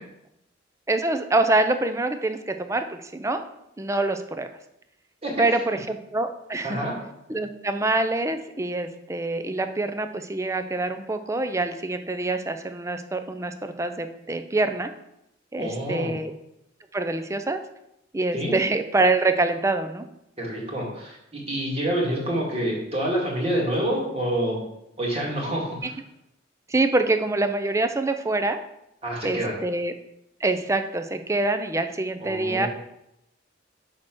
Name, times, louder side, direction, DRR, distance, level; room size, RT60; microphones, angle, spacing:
voice 1, 0.9-3.4 3.8-4.5 5.4-6.8 7.3-14.9 15.5-16.3 16.9-17.6 18.1-20.1 26.7-28.6 29.2-29.9 30.4-32.7, right 2 dB, 15° right, 8 dB, 0.5 m, -25 dB
voice 2, 6.6-6.9 15.6-16.1 18.3-18.5 20.4-24.6 25.0-25.9 29.0-29.5 32.2-32.7, right 1 dB, 30° right, -3 dB, 2.2 m, -27 dB
6.6 x 4.4 x 6.0 m, 0.82 s
head